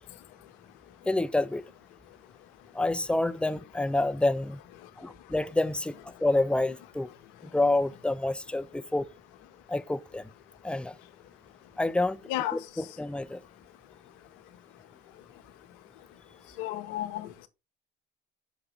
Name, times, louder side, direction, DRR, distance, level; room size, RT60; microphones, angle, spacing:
voice 1, 1.1-1.6 2.7-4.6 5.0-7.1 7.4-9.1 9.7-10.3 10.6-11.0 11.8-12.2 12.5-13.4, left 2 dB, 5° left, 0.4 m, -28 dB
voice 2, 16.6-17.3, left 13 dB, 70° left, 0.9 m, -32 dB
5.7 x 5.0 x 4.2 m
hypercardioid pair, 55°, 33 cm